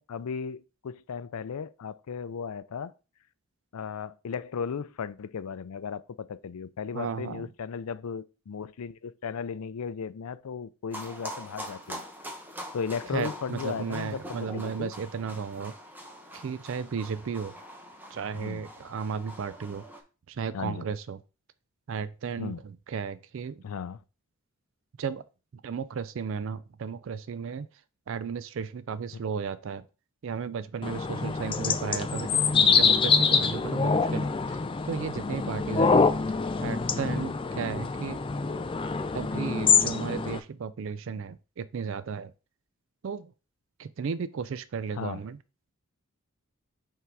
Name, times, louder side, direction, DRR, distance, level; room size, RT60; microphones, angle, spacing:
voice 1, 0.0-2.9 3.7-12.0 12.7-14.9 18.3-18.6 20.5-20.9 22.4-22.6 23.6-24.0 32.5-32.8 37.0-37.3 44.9-45.2, left 6 dB, 85° left, 0.4 m, -36 dB
voice 2, 6.9-7.4 13.1-15.7 16.3-17.5 18.1-19.8 20.3-21.2 21.9-23.6 25.0-25.2 25.6-27.7 28.1-29.9 30.2-32.4 32.7-34.6 34.9-36.1 36.6-38.2 39.1-42.3 43.0-43.3 43.8-45.4, right 6 dB, 60° right, 0.4 m, -34 dB
sound 1, 10.9-20.0, equal, 10° right, 0.8 m, -43 dB
sound 2, 30.8-40.4, left 5 dB, 25° left, 0.4 m, -25 dB
5.7 x 3.8 x 4.6 m
head